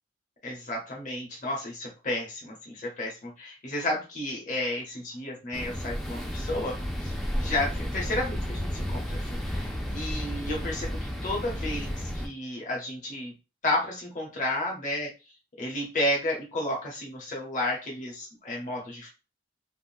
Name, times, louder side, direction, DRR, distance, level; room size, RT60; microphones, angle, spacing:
voice 1, 0.4-6.8 7.4-13.3 13.6-15.1 15.6-19.1, left 1 dB, 45° left, -2 dB, 0.9 m, -32 dB
sound 1, 5.5-12.3, equal, ahead, 0.4 m, -32 dB
3.5 x 2.1 x 2.5 m, 0.30 s
head